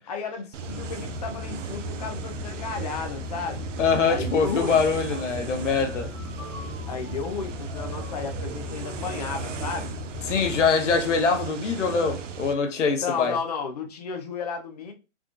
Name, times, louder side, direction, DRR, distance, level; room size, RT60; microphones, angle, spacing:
voice 1, 0.1-3.7 4.1-4.8 6.9-9.9 11.9-12.2 13.0-14.9, left 5 dB, 35° left, 0.5 m, -33 dB
sound 1, 0.5-12.5, right 8 dB, 85° right, 0.6 m, -37 dB
sound 2, 0.6-10.7, left 6 dB, 10° left, 1.1 m, -38 dB
voice 2, 3.8-6.1 10.3-13.4, left 5 dB, 80° left, 0.8 m, -23 dB
sound 3, 5.1-10.3, right 1 dB, 30° right, 1.5 m, -45 dB
3.5 x 2.3 x 2.4 m
hypercardioid pair, 160°, 36 cm